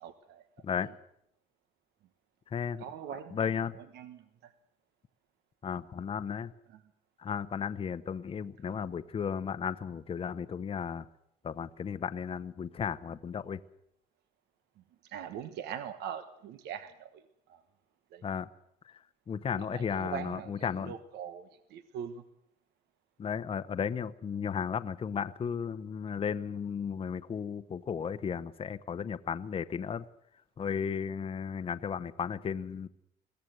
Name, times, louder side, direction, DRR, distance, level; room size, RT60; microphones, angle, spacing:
voice 1, 0.0-0.4 0.8-0.9 2.8-4.5 6.7-6.8 8.6-8.8 15.0-17.2 17.5-17.6 18.1-18.2 19.6-22.2, right 8 dB, 80° right, 10 dB, 1.1 m, -42 dB
voice 2, 2.5-2.8 3.3-3.8 5.6-6.5 7.2-11.1 11.4-13.6 18.2-18.5 19.3-20.9 23.2-30.0 30.6-32.9, left 7 dB, 35° left, 11 dB, 0.8 m, -34 dB
22.0 x 16.5 x 8.0 m, 0.76 s
cardioid pair, 110°, 17 cm